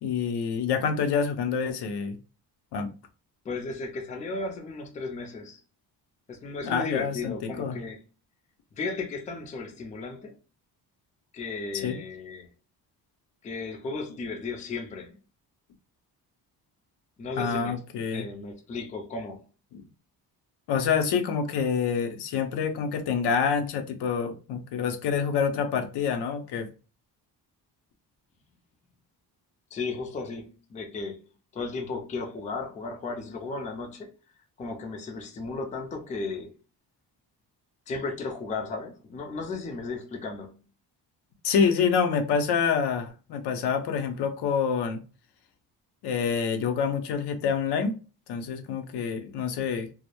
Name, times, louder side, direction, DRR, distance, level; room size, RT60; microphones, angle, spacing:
voice 1, 0.0-2.2 2.7-2.9 6.6-7.8 11.7-12.0 17.4-18.3 19.7-19.9 20.7-26.7 41.4-45.0 46.0-48.0 48.3-49.9, left 6 dB, 85° left, 0.6 m, -27 dB
voice 2, 3.4-5.6 6.3-8.0 8.8-10.4 11.3-12.5 13.4-15.1 17.2-17.7 18.1-19.4 29.7-31.2 31.5-34.1 34.6-36.5 37.9-40.5, left 3 dB, 20° left, 0.3 m, -35 dB
2.1 x 2.0 x 2.9 m
cardioid pair, 165°, 39 cm